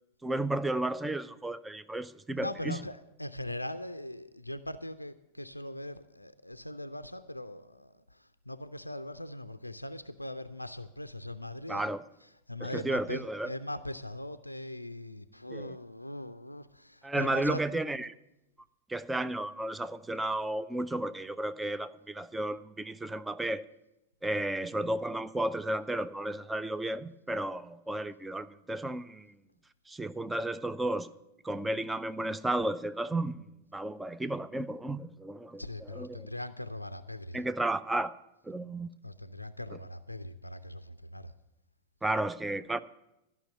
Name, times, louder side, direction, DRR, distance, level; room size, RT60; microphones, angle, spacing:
voice 1, 0.2-2.8 11.7-12.0 12.6-13.5 15.5-15.8 17.0-18.1 18.9-23.6 24.2-29.3 29.9-31.1 31.4-33.4 33.7-36.3 37.3-38.1 38.5-38.9 42.0-42.8, right 1 dB, 10° right, 0.5 m, -33 dB
voice 2, 2.4-11.9 12.5-17.6 35.6-37.4 39.0-41.3, left 1 dB, 85° left, 0.4 m, -40 dB
13.0 x 5.8 x 9.0 m
figure-of-eight pair, 90°, 0 cm